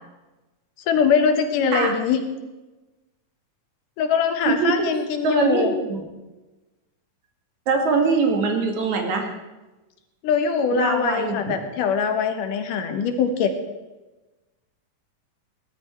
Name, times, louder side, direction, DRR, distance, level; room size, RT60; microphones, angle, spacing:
voice 1, 0.9-2.2 4.0-5.7 10.2-13.5, left 6 dB, 85° left, 7 dB, 3.0 m, -22 dB
voice 2, 4.4-4.9 5.2-6.0 7.7-9.3 10.7-11.4, right 4 dB, 65° right, 3 dB, 3.3 m, -22 dB
17.5 x 13.5 x 4.5 m, 1.1 s
omnidirectional pair, 3.7 m